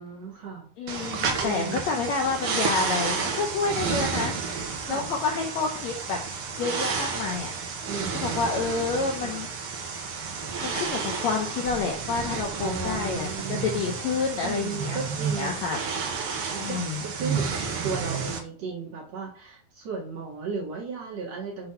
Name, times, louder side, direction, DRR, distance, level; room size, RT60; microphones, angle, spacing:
voice 1, 0.0-0.7 1.4-1.9 4.8-5.1 7.9-8.6 9.2-9.4 12.6-13.8 14.4-15.9 16.5-21.7, right 4 dB, 50° right, -3 dB, 2.8 m, -35 dB
voice 2, 0.8-4.3 4.9-6.2 6.6-7.5 8.2-9.5 10.6-15.0 15.3-15.8 16.6-17.0, left 4 dB, 70° left, 1 dB, 1.7 m, -29 dB
sound 1, 0.9-18.4, right 5 dB, 80° right, 1.2 m, -31 dB
6.6 x 4.0 x 5.7 m, 0.43 s
omnidirectional pair, 4.2 m